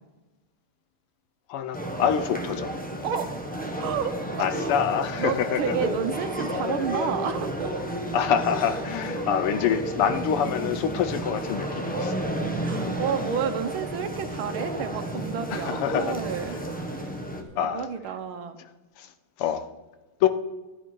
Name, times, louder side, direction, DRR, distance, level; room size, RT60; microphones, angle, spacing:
voice 1, 1.5-2.7 4.4-5.7 8.1-12.1 15.1-15.2 15.5-16.2 17.6-17.9 19.0-19.1 19.4-19.6 20.2-20.3, left 8 dB, 85° left, 10 dB, 1.7 m, -26 dB
sound 1, 1.7-17.4, right 1 dB, 5° left, 0.8 m, -31 dB
voice 2, 3.0-3.3 3.8-4.2 5.2-7.7 12.6-16.6 17.6-18.6, right 7 dB, 75° right, 8 dB, 1.7 m, -30 dB
12.0 x 10.5 x 4.6 m, 1.2 s
omnidirectional pair, 2.4 m